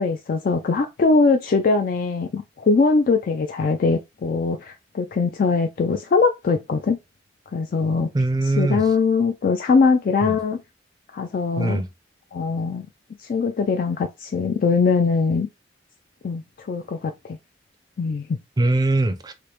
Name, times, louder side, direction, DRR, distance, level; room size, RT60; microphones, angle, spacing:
voice 1, 0.0-7.0 7.5-8.1 8.6-10.6 11.1-11.8 12.3-12.9 13.3-15.5 16.2-17.4 18.0-18.4, left 4 dB, 50° left, 0.3 m, -21 dB
voice 2, 8.1-8.8 10.2-10.4 11.6-11.9 18.6-19.3, right 2 dB, 20° right, 0.4 m, -21 dB
4.9 x 2.1 x 2.9 m
head